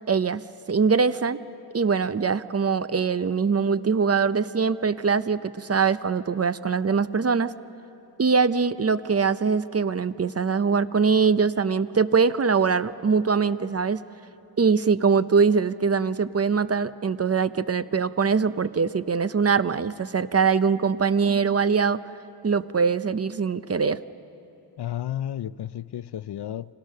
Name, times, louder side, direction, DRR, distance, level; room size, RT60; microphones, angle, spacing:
voice 1, 0.1-1.4 1.7-7.6 8.2-14.0 14.6-22.0 22.4-24.0, right 5 dB, 35° right, 14 dB, 0.6 m, -22 dB
voice 2, 24.8-26.7, left 11 dB, 65° left, 17 dB, 0.5 m, -32 dB
29.5 x 25.5 x 6.5 m, 2.8 s
wide cardioid pair, 100°, 43 cm